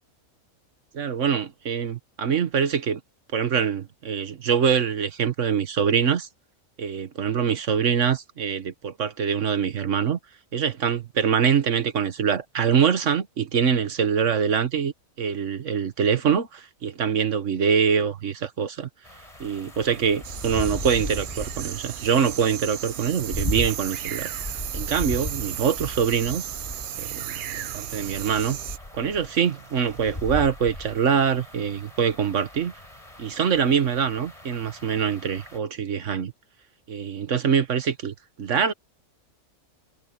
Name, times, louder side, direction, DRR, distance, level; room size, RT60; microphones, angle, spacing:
voice 1, 0.9-3.0 3.3-6.3 6.8-10.2 10.5-14.9 15.2-18.9 19.4-24.3 24.7-26.4 27.0-28.6 28.9-32.7 33.2-36.3 36.9-38.7, right 7 dB, 60° right, 1.6 m, -24 dB
sound 1, 19.0-35.6, left 1 dB, 25° left, 4.5 m, -37 dB
sound 2, 20.2-28.8, right 11 dB, 80° right, 0.4 m, -35 dB
omnidirectional pair, 1.5 m